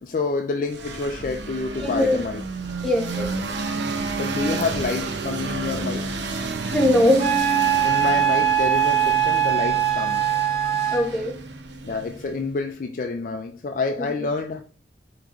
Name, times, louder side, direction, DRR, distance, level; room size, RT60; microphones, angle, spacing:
voice 1, 0.0-2.5 4.2-6.1 7.8-10.4 11.8-14.6, left 4 dB, 45° left, 0.4 m, -28 dB
sound 1, 0.7-12.4, right 3 dB, 75° right, 0.7 m, -31 dB
voice 2, 1.8-2.2 2.8-3.3 6.7-7.4 10.9-11.4 14.0-14.1, left 1 dB, 5° left, 0.8 m, -21 dB
Wind instrument woodwind instrument, 7.2-11.1, right 10 dB, 35° right, 0.8 m, -21 dB
4.7 x 3.0 x 3.7 m
head